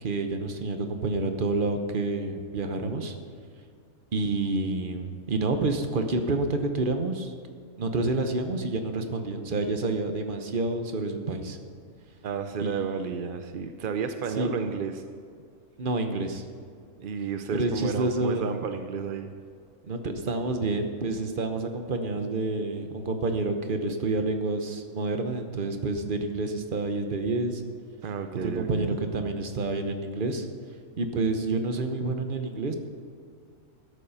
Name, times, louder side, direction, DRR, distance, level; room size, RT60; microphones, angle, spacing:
voice 1, 0.0-3.1 4.1-7.3 7.8-11.6 12.6-13.1 14.3-14.5 15.8-16.4 17.5-18.5 19.8-27.6 28.4-30.5 31.0-32.8, right 3 dB, 40° right, 6 dB, 1.0 m, -28 dB
voice 2, 12.2-15.0 17.0-19.3 28.0-29.0, right 6 dB, 65° right, 7 dB, 0.5 m, -32 dB
12.5 x 8.4 x 5.6 m, 2.2 s
omnidirectional pair, 1.6 m